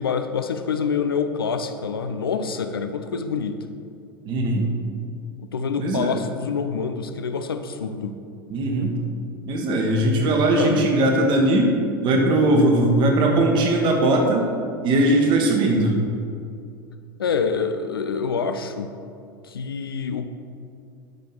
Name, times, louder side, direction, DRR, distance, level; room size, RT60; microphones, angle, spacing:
voice 1, 0.0-3.6 5.4-8.2 10.6-10.9 17.2-18.9 19.4-20.3, left 5 dB, 75° left, 9 dB, 0.6 m, -26 dB
voice 2, 4.2-4.6 5.8-6.1 8.5-8.9 9.5-11.7 12.0-14.5 14.8-16.0, right 1 dB, 40° right, 1 dB, 1.7 m, -19 dB
12.5 x 5.2 x 4.5 m, 2.4 s
figure-of-eight pair, 80°, 12 cm